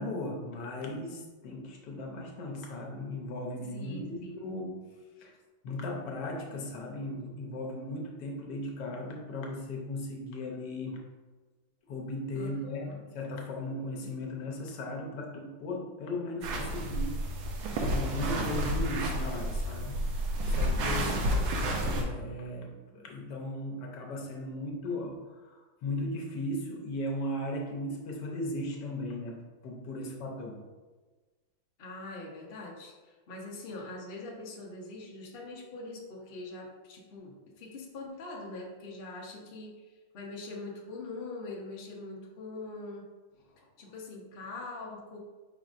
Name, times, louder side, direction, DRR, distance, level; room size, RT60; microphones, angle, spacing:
voice 1, 0.0-4.9 5.2-5.3 5.6-11.0 11.8-20.0 20.4-21.1 21.8-29.4 29.6-30.6, left 1 dB, 65° left, 0 dB, 1.3 m, -37 dB
voice 2, 3.7-4.4 5.2-5.3 12.4-12.5 12.8-13.0 14.0-14.1 20.7-21.5 31.8-43.0 43.8-45.2, left 2 dB, 90° left, -2 dB, 0.5 m, -43 dB
sound 1, 16.4-22.0, equal, 80° right, 1.5 m, -30 dB
5.0 x 4.3 x 2.5 m, 1.3 s
omnidirectional pair, 2.2 m